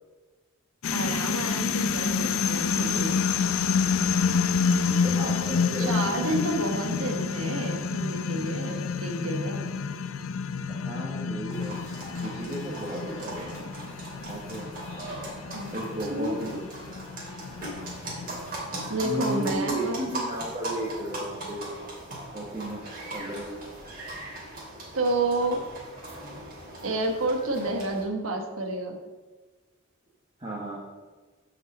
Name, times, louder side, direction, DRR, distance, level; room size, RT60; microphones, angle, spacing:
sound 1, 0.8-19.3, left 5 dB, 70° left, 0.5 m, -29 dB
voice 1, 0.9-3.2 5.8-9.7 15.5-16.6 18.9-20.1 24.9-25.6 26.8-29.0, right 1 dB, 85° right, 4 dB, 1.3 m, -30 dB
voice 2, 4.8-6.6 10.7-11.8 12.2-13.9 14.3-14.7 15.7-16.3 19.0-21.7 22.3-23.5 30.4-30.8, right 1 dB, 25° right, -5 dB, 1.4 m, -34 dB
sound 2, 11.5-28.0, right 1 dB, 45° right, 2.7 m, -39 dB
5.9 x 5.7 x 7.1 m, 1.3 s
head